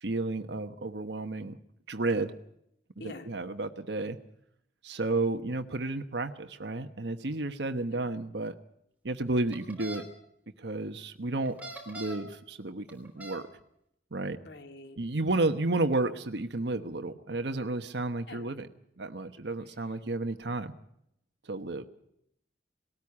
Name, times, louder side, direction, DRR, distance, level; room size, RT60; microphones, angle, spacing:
voice 1, 0.0-1.6 1.9-2.3 3.0-4.2 4.8-8.5 9.0-10.0 10.6-11.6 11.9-13.4 14.1-14.4 15.0-18.7 19.0-20.7 21.4-21.8, right 2 dB, 85° right, 7 dB, 1.1 m, -32 dB
voice 2, 3.0-3.3 7.7-8.1 14.4-15.0 18.3-18.6, left 1 dB, 80° left, 6 dB, 2.0 m, -46 dB
sound 1, 9.5-10.0 11.5-12.3 12.9-13.4, right 1 dB, 10° right, 3.3 m, -42 dB
20.0 x 13.5 x 9.6 m, 0.76 s
head